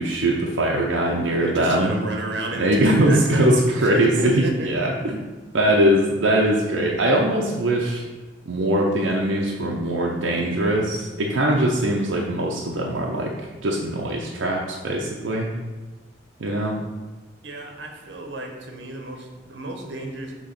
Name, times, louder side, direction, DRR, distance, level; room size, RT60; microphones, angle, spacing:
voice 1, 0.0-1.9 2.6-5.2 5.5-8.0 8.5-13.3 13.6-15.5 16.4-16.8, right 1 dB, 85° right, -1 dB, 0.7 m, -21 dB
voice 2, 1.5-4.7 17.4-20.3, right 1 dB, 65° right, 2 dB, 1.0 m, -32 dB
6.5 x 3.1 x 5.8 m, 1.2 s
head